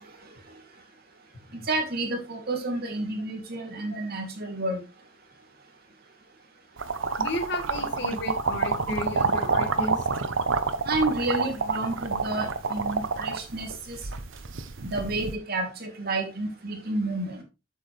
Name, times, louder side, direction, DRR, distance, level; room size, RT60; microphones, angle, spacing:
voice 1, 1.7-4.8 10.8-14.0 14.8-17.4, right 2 dB, 55° right, 3 dB, 2.6 m, -30 dB
sound 1, 6.8-15.3, right 4 dB, 80° right, 0.8 m, -28 dB
voice 2, 7.2-10.1, left 1 dB, 65° left, 5 dB, 1.8 m, -33 dB
8.1 x 7.2 x 3.2 m, 0.27 s
head